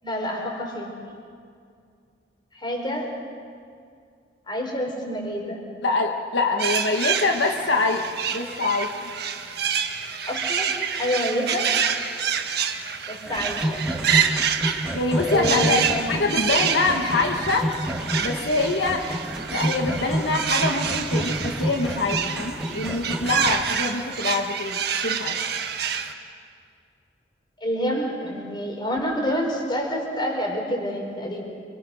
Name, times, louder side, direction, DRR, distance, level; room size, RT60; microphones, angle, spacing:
voice 1, 0.0-1.1 2.5-3.2 4.5-5.7 10.3-11.7 13.1-13.9 15.3-16.1 27.6-31.4, equal, 25° left, 1 dB, 4.4 m, -28 dB
voice 2, 5.8-8.0 8.3-9.1 14.9-17.7 18.2-19.0 19.5-25.4, left 3 dB, 80° left, 2 dB, 1.6 m, -25 dB
sound 1, 6.6-26.1, right 7 dB, 60° right, 1.6 m, -27 dB
sound 2, 13.3-23.6, right 1 dB, 5° right, 2.3 m, -29 dB
29.5 x 24.0 x 6.5 m, 2.3 s
head